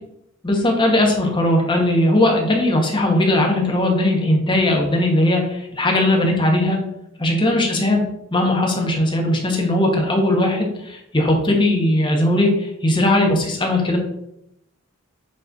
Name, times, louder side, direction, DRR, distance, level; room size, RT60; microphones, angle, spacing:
voice 1, 0.4-6.8 7.2-8.0 8.3-14.0, left 1 dB, 20° left, 0 dB, 1.1 m, -18 dB
7.5 x 3.1 x 3.9 m, 0.79 s
head